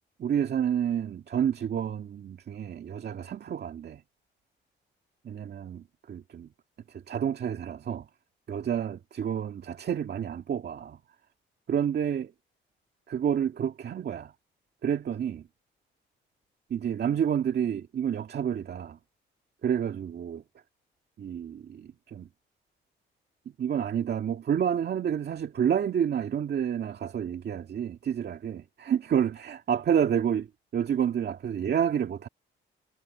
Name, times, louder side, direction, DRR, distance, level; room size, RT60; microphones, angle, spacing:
voice 1, 0.2-4.0 5.2-5.8 6.1-6.5 7.1-8.1 8.5-11.0 11.7-12.3 13.1-14.3 14.8-15.4 16.7-19.0 19.6-20.4 21.2-22.3 23.6-30.5 30.7-32.3, right 8 dB, 55° right, 2.0 m, -29 dB
cardioid pair, 90°, 20 cm